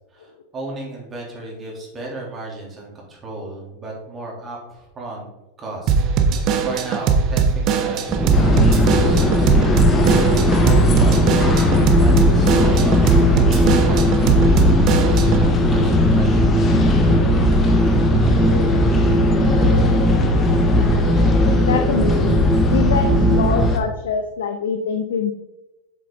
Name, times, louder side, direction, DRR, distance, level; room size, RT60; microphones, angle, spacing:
voice 1, 0.1-5.3 5.6-16.7, right 2 dB, 20° right, -2 dB, 3.0 m, -35 dB
Drum kit / Drum, 5.9-15.5, right 6 dB, 35° right, 1.0 m, -20 dB
sound 1, 8.1-23.8, equal, ahead, 0.7 m, -18 dB
sound 2, 8.3-23.8, left 3 dB, 25° left, 1.2 m, -22 dB
voice 2, 21.6-25.3, left 6 dB, 60° left, 7 dB, 0.6 m, -24 dB
7.7 x 7.6 x 3.7 m, 0.97 s
figure-of-eight pair, 90°, 0 cm